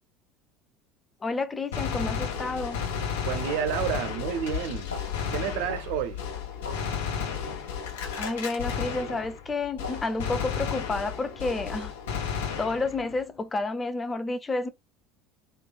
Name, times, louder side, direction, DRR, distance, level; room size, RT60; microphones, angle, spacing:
voice 1, 1.2-2.8 8.2-11.9 12.2-14.7, left 3 dB, 25° left, 0.4 m, -30 dB
Gunshot gunfire, 1.7-9.5 9.8-13.1, left 7 dB, 75° left, 1.1 m, -33 dB
sound 1, 2.7-2.9 3.5-3.7 4.2-4.5 4.9-5.1 5.7-5.9 6.6-6.9 7.5-7.6 8.2-8.5 9.1-9.3 9.8-10.1 10.7-10.9 11.6-11.8, left 3 dB, 90° left, 0.4 m, -41 dB
voice 2, 3.2-4.9 5.3-6.2, right 9 dB, 65° right, 0.5 m, -30 dB
3.1 x 2.3 x 2.3 m
figure-of-eight pair, 70°, 0 cm